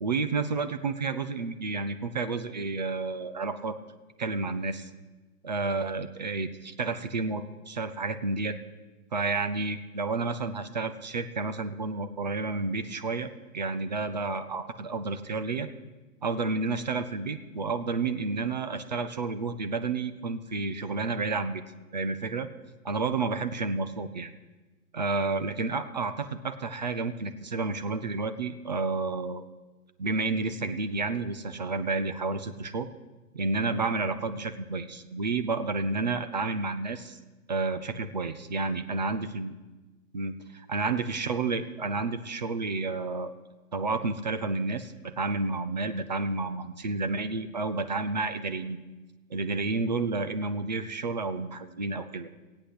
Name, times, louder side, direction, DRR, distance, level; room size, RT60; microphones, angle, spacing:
voice 1, 0.0-3.8 4.2-4.9 5.4-8.6 9.1-15.7 16.2-21.6 21.9-22.5 22.8-24.3 24.9-29.5 30.0-32.9 33.3-37.2 37.5-39.5 40.1-43.3 43.7-48.8 49.3-52.3, right 3 dB, 30° right, 10 dB, 0.5 m, -30 dB
15.5 x 8.6 x 7.8 m, 1.2 s
hypercardioid pair, 155°, 45 cm